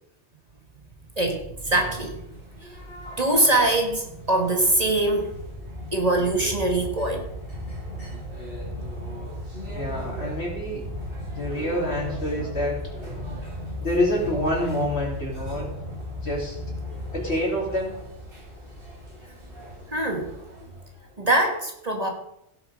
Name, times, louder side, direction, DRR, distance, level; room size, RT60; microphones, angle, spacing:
voice 1, 1.2-2.2 2.6-2.7 3.2-5.4 5.9-7.3 19.9-20.4 21.2-22.1, right 2 dB, 35° right, 2 dB, 1.9 m, -23 dB
sound 1, 2.1-21.1, left 1 dB, 55° right, 6.7 m, -36 dB
voice 2, 9.7-10.8 11.3-13.1 13.8-15.7 16.2-16.6 17.1-18.0, left 1 dB, 70° left, -2 dB, 4.0 m, -27 dB
16.0 x 7.2 x 5.3 m, 0.78 s
omnidirectional pair, 1.1 m